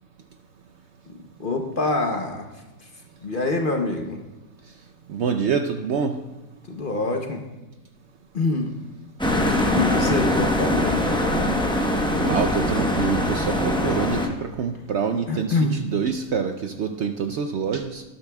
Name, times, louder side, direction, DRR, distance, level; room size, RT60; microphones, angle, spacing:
voice 1, 1.1-2.5 2.8-2.9 3.2-4.2 6.7-7.4 8.3-8.8 9.7-11.0 15.3-15.8, left 2 dB, 45° left, 3 dB, 0.8 m, -25 dB
voice 2, 5.1-6.2 10.0-10.1 12.2-18.0, right 6 dB, 65° right, 7 dB, 0.7 m, -26 dB
sound 1, 9.2-14.3, left 1 dB, 5° left, 0.6 m, -22 dB
12.5 x 12.0 x 2.3 m, 1.2 s
omnidirectional pair, 1.5 m